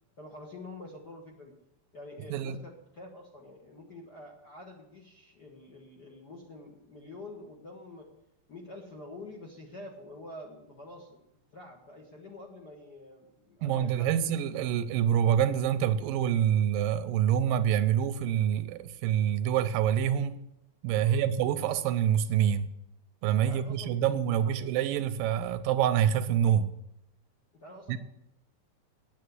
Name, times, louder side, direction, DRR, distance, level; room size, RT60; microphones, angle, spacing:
voice 1, 0.2-1.5 1.9-8.1 8.5-11.2 11.5-14.1 21.0-21.3 23.4-24.0 24.3-24.7 27.5-28.0, left 2 dB, 45° left, 1.4 m, -47 dB
voice 2, 13.6-20.4 20.8-22.7 23.2-26.7 27.9-28.0, right 9 dB, 85° right, 2.4 m, -26 dB
9.5 x 8.6 x 7.9 m
omnidirectional pair, 4.1 m